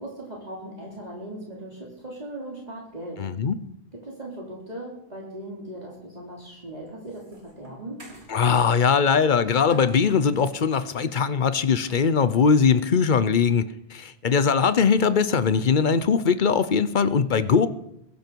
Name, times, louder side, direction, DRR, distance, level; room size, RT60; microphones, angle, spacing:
voice 1, 0.0-3.2 3.9-8.0, right 1 dB, 40° right, -3 dB, 3.2 m, -38 dB
voice 2, 3.2-3.6 8.3-13.7 13.9-17.7, left 6 dB, 50° left, 14 dB, 0.9 m, -21 dB
sound 1, 6.5-8.4 9.7-10.6 11.8-12.1, right 1 dB, 85° right, 4.0 m, -45 dB
21.5 x 12.0 x 4.7 m, 0.79 s
omnidirectional pair, 1.1 m